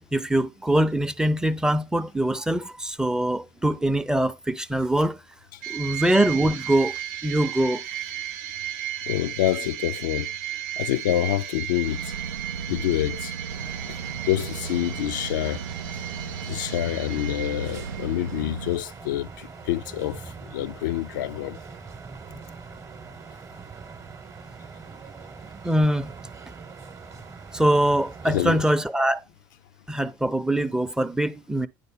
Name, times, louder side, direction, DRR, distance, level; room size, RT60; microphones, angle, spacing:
voice 1, 0.1-5.2 5.7-6.9 7.2-7.8 25.6-26.1 27.5-29.2 29.9-31.7, right 1 dB, 5° right, 0.5 m, -23 dB
sound 1, 5.6-18.5, right 11 dB, 65° right, 0.8 m, -35 dB
voice 2, 9.1-10.3 10.8-12.1 12.7-13.3 13.9-14.0 14.3-15.6 16.5-20.2 20.5-21.6 28.3-28.6, left 13 dB, 65° left, 0.4 m, -27 dB
sound 2, 11.8-18.8, right 6 dB, 80° right, 0.4 m, -36 dB
sound 3, 13.5-28.8, right 5 dB, 25° right, 0.9 m, -43 dB
10.0 x 4.0 x 5.0 m
figure-of-eight pair, 65°, 11 cm